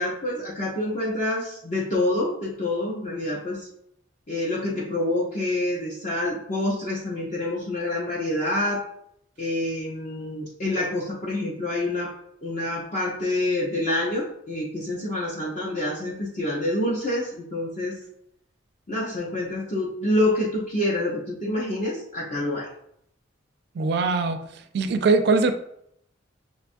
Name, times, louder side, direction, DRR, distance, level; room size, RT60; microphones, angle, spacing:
voice 1, 0.0-3.7 4.3-8.8 9.4-12.1 12.4-18.0 18.9-22.7, left 1 dB, 40° left, -5 dB, 0.7 m, -27 dB
voice 2, 23.8-24.4 24.7-25.5, right 4 dB, 55° right, 9 dB, 0.4 m, -21 dB
6.2 x 2.3 x 2.5 m, 0.74 s
head